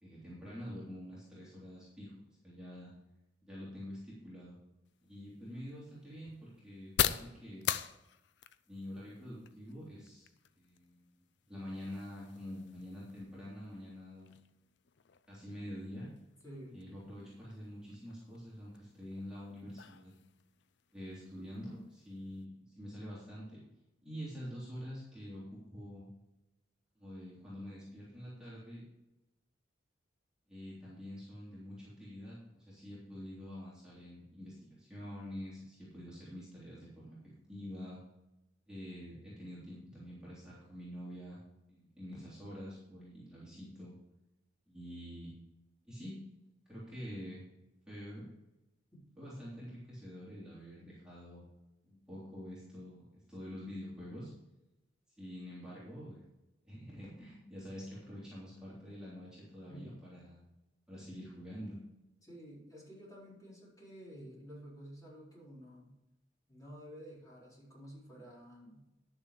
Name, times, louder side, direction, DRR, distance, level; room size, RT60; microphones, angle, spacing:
voice 1, 0.0-2.9 3.4-4.6 5.0-7.6 8.7-10.3 10.6-11.1 11.5-14.3 15.3-16.1 16.7-20.1 20.9-23.6 24.0-26.1 27.0-28.8 30.5-38.0 38.7-41.4 41.7-43.9 44.7-45.3 45.8-46.2 46.7-47.4 47.9-48.3 49.2-51.4 51.9-54.3 55.2-56.2 56.7-60.4 60.9-61.8, equal, 5° right, -9 dB, 3.4 m, -46 dB
sound 1, 4.8-22.4, left 9 dB, 60° left, 0.5 m, -43 dB
voice 2, 16.4-16.8 59.7-60.2 62.2-66.0 66.5-68.8, equal, 20° left, -6 dB, 4.5 m, -51 dB
12.0 x 6.9 x 5.0 m, 0.95 s
head